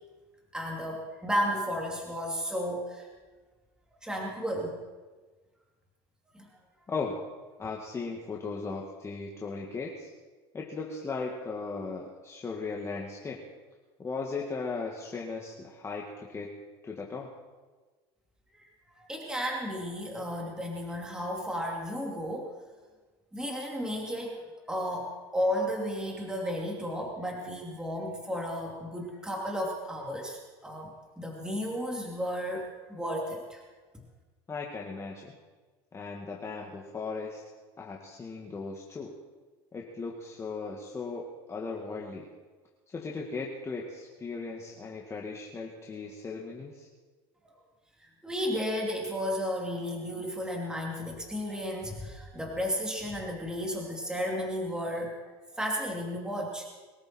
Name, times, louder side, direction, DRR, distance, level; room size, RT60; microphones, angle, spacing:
voice 1, 0.5-3.1 4.0-4.8 6.3-6.5 18.5-18.7 19.0-22.5 23.3-24.4 24.7-33.6 48.0-55.1 55.5-56.6, equal, 5° right, -1 dB, 2.8 m, -33 dB
voice 2, 6.9-7.2 7.6-10.1 10.5-13.4 14.0-16.5 16.8-17.3 34.5-35.4 35.9-37.4 37.8-39.1 39.7-42.3 42.9-46.9, left 4 dB, 20° left, -1 dB, 2.0 m, -37 dB
23.0 x 13.5 x 4.4 m, 1.3 s
supercardioid pair, 110°, 13 cm